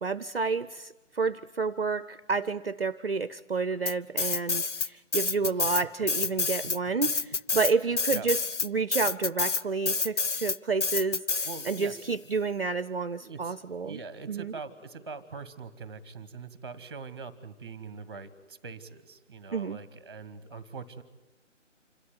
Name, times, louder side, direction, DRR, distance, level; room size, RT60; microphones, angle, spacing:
voice 1, 0.0-14.0 14.3-14.5 19.5-19.8, right 4 dB, 50° right, 17 dB, 0.7 m, -30 dB
sound 1, 3.9-4.9 5.1-12.0, left 4 dB, 70° left, 0.9 m, -28 dB
voice 2, 11.4-12.1 13.1-13.6 13.8-21.0, right 4 dB, 20° right, 16 dB, 1.2 m, -43 dB
27.0 x 13.0 x 9.7 m, 1.2 s
figure-of-eight pair, 150°, 38 cm